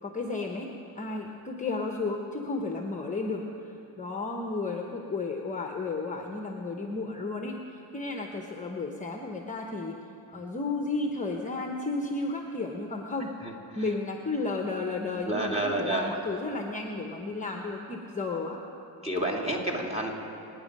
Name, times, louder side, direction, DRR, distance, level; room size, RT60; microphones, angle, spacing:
voice 1, 0.0-0.7 1.0-3.7 4.0-9.9 10.3-13.3 13.7-18.6, left 3 dB, 15° left, 2 dB, 1.0 m, -33 dB
voice 2, 15.2-16.2 19.0-20.1, right 1 dB, 15° right, 0 dB, 2.4 m, -29 dB
26.0 x 9.5 x 5.4 m, 2.8 s
cardioid pair, 120°, 44 cm